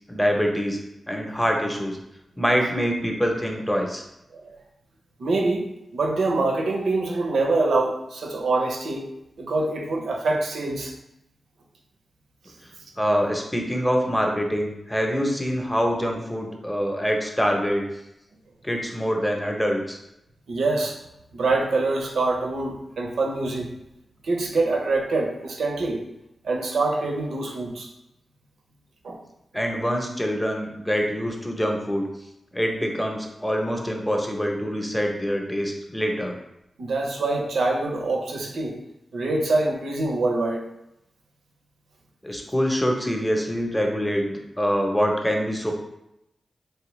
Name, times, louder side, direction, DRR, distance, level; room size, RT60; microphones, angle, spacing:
voice 1, 0.1-2.0 2.4-4.0 13.0-17.9 18.6-20.0 29.5-32.1 32.5-36.3 42.2-45.7, equal, 10° left, 2 dB, 0.6 m, -25 dB
voice 2, 5.2-9.1 9.4-10.9 20.5-21.0 21.3-23.7 24.2-26.0 26.4-27.9 29.0-29.2 36.8-38.8 39.1-40.6, right 2 dB, 90° right, 1 dB, 0.6 m, -25 dB
3.4 x 3.1 x 3.1 m, 0.86 s
wide cardioid pair, 80°, 0 cm